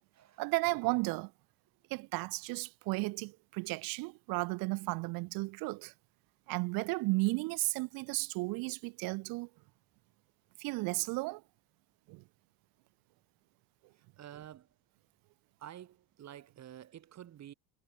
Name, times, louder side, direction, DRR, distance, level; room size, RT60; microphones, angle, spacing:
voice 1, 0.4-1.3 1.9-5.9 6.5-9.5 10.6-11.4 12.1-12.2, right 25 dB, 80° right, 2.0 m, -34 dB
voice 2, 14.0-14.7 15.6-17.5, right 11 dB, 50° right, 4.3 m, -50 dB
supercardioid pair, 100°, 35 cm